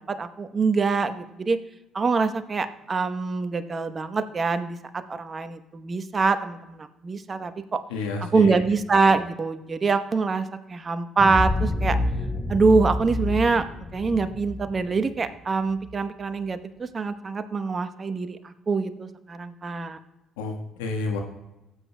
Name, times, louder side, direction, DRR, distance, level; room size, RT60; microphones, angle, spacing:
voice 1, 0.0-1.6 1.9-7.8 8.2-12.0 12.5-13.7 13.9-20.0, right 4 dB, 40° right, 10 dB, 0.9 m, -24 dB
voice 2, 7.9-8.5 20.4-21.2, left 3 dB, 85° left, 2 dB, 1.3 m, -30 dB
sound 1, 11.2-15.9, left 2 dB, 25° left, 0.8 m, -28 dB
18.0 x 8.1 x 2.2 m, 0.93 s
hypercardioid pair, 55°, 0 cm